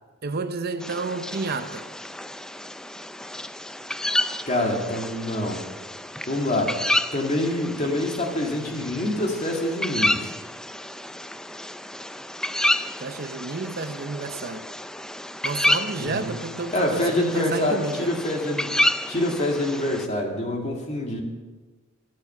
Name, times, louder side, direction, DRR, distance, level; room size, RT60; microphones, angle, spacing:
voice 1, 0.2-1.9 13.0-14.7 15.4-18.1, right 3 dB, 50° right, 0.7 m, -30 dB
sound 1, 0.8-20.1, left 1 dB, 5° left, 0.3 m, -30 dB
voice 2, 4.5-5.6 6.3-6.8 7.1-10.3 16.0-16.4 16.7-18.7 19.1-21.2, left 1 dB, 35° left, 2.2 m, -26 dB
14.5 x 10.5 x 5.9 m
head